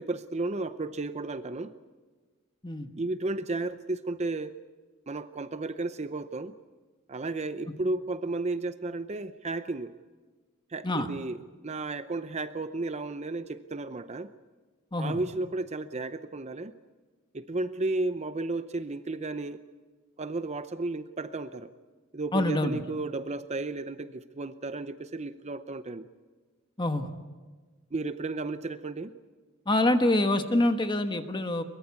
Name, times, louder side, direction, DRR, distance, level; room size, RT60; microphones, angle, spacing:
voice 1, 0.0-1.7 2.9-4.5 5.1-6.6 7.1-9.9 10.7-11.4 11.6-14.3 15.0-16.7 17.3-19.6 20.2-21.7 22.1-26.1 27.9-29.1, right 2 dB, 30° right, 11 dB, 0.7 m, -33 dB
voice 2, 22.3-22.8 26.8-27.1 29.7-31.6, left 1 dB, 20° left, 8 dB, 1.3 m, -25 dB
23.0 x 22.0 x 8.3 m, 1.4 s
head